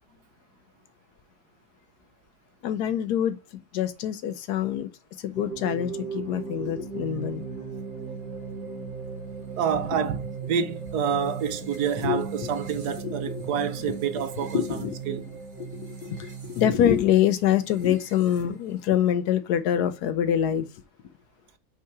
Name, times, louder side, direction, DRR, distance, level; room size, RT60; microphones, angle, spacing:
voice 1, 2.6-3.4 3.7-4.9 5.2-7.4 12.0-12.2 13.0-13.4 14.5-15.0 15.7-20.7, left 10 dB, 70° left, 1.1 m, -25 dB
sound 1, 5.3-18.9, right 5 dB, 30° right, 1.7 m, -38 dB
voice 2, 9.6-15.3, right 7 dB, 70° right, 1.1 m, -28 dB
5.6 x 3.7 x 4.5 m
omnidirectional pair, 1.9 m